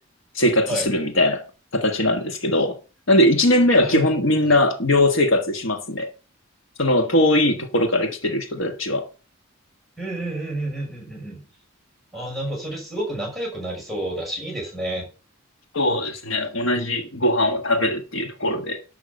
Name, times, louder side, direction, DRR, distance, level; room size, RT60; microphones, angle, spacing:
voice 1, 0.3-1.4 1.7-2.8 3.1-6.1 6.8-9.1 15.7-18.8, left 1 dB, 60° left, 1.5 m, -20 dB
voice 2, 10.0-11.4 12.1-15.1, right 1 dB, ahead, 6.4 m, -30 dB
12.0 x 5.9 x 6.9 m
head